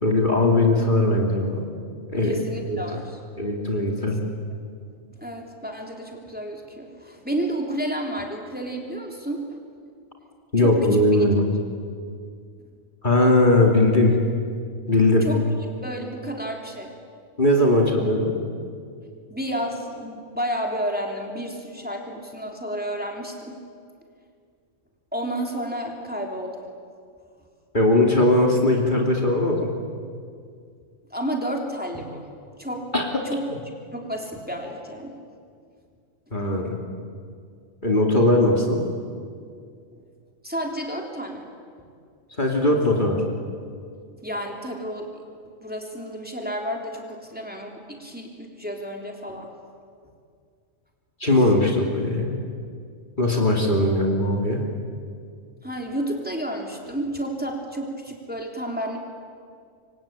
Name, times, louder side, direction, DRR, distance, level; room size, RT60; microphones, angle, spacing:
voice 1, 0.0-1.6 2.1-2.3 2.7-2.8 3.4-4.2 10.5-11.5 13.0-14.2 14.9-15.3 17.4-18.3 27.7-29.7 32.9-33.2 36.3-36.8 37.8-38.8 42.4-43.2 51.2-52.3 53.2-54.6, left 1 dB, 35° left, 0 dB, 3.0 m, -19 dB
voice 2, 2.2-3.2 4.0-4.2 5.1-9.6 10.6-10.8 11.1-11.3 15.2-15.4 15.8-16.9 19.3-23.6 25.1-26.7 31.1-32.2 32.6-32.9 33.3-33.5 33.9-35.2 36.3-36.4 39.9-40.0 40.4-41.5 41.8-41.9 44.2-45.2 45.6-49.5 55.6-59.0, right 1 dB, 5° right, 1 dB, 3.5 m, -31 dB
27.0 x 24.5 x 8.9 m, 2.2 s
omnidirectional pair, 1.4 m